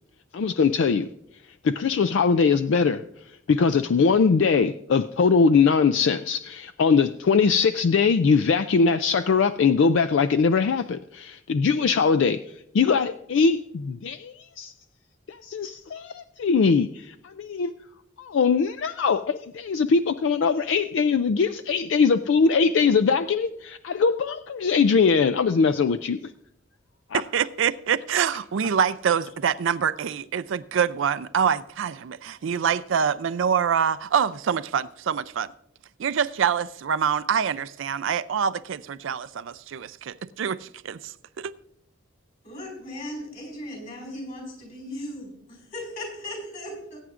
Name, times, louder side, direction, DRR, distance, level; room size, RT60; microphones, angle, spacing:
voice 1, 0.3-1.1 1.6-3.0 3.5-12.4 12.7-14.7 15.3-17.7 18.2-26.2 27.1-27.2, left 5 dB, 65° left, 0.4 m, -21 dB
voice 2, 27.1-35.5 36.0-41.5, right 7 dB, 70° right, 0.4 m, -25 dB
voice 3, 42.4-47.0, left 1 dB, 40° left, 4.8 m, -37 dB
20.5 x 9.2 x 2.5 m
head